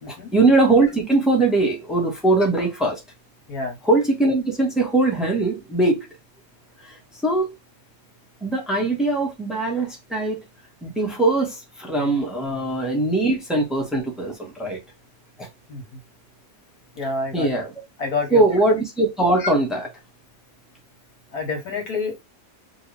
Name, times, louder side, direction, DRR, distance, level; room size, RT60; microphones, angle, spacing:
voice 1, 0.1-3.0 3.8-6.1 6.8-7.5 8.4-10.4 10.8-14.8 15.4-15.5 17.3-17.7 18.3-19.9, right 2 dB, ahead, 1.4 m, -21 dB
voice 2, 17.0-17.5 18.0-18.4 19.4-19.5 21.3-22.2, left 3 dB, 90° left, 1.9 m, -28 dB
5.0 x 3.0 x 3.4 m
omnidirectional pair, 1.6 m